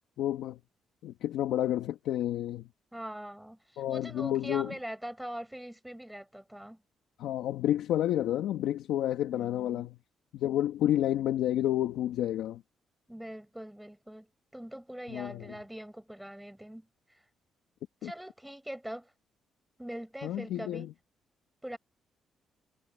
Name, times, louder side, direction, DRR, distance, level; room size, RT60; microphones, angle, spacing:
voice 1, 0.2-0.6 1.0-2.7 3.8-4.7 7.2-10.0 10.3-12.6 15.1-15.6 18.0-18.1 20.2-20.9, left 12 dB, 85° left, 2.3 m, -30 dB
voice 2, 2.9-6.8 9.3-9.9 13.1-14.3 14.5-17.2 18.0-19.1 19.8-20.9 21.6-21.8, right 1 dB, 5° right, 7.6 m, -42 dB
cardioid pair, 90°, 0 cm